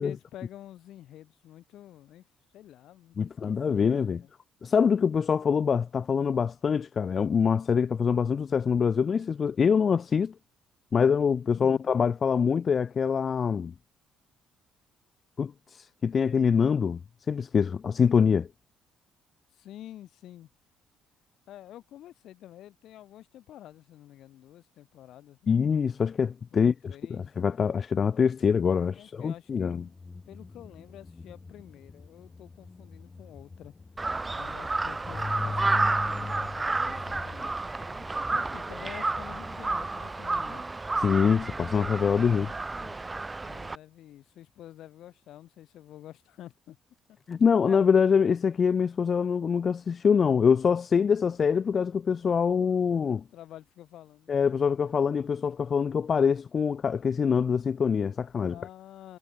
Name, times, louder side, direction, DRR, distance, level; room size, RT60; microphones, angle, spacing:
voice 1, 0.0-2.2 2.5-3.8 4.1-4.3 11.5-11.8 19.5-20.5 21.5-25.6 26.5-27.3 28.9-29.9 30.3-33.7 34.3-37.5 38.3-40.7 42.3-43.0 43.4-46.8 53.3-54.3 58.4-59.2, left 13 dB, 70° left, 1.5 m, -48 dB
voice 2, 3.2-4.2 4.6-10.3 10.9-13.7 15.4-17.0 17.3-18.5 25.5-29.8 41.0-42.5 47.3-53.2 54.3-58.6, left 6 dB, 40° left, 0.4 m, -24 dB
sound 1, 29.6-41.1 47.3-47.4 47.7-47.9, left 4 dB, 20° left, 2.2 m, -42 dB
Crow, 34.0-43.7, right 3 dB, 20° right, 0.9 m, -31 dB
cardioid pair, 115°, 0 cm